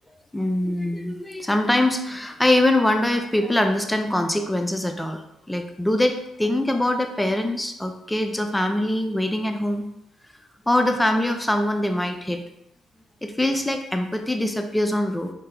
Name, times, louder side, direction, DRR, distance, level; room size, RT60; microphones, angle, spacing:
voice 1, 0.3-5.2 5.5-9.8 10.7-12.4 13.2-15.3, left 1 dB, 10° left, 5 dB, 0.5 m, -23 dB
4.5 x 2.1 x 3.7 m, 0.80 s
cardioid pair, 90°, 0 cm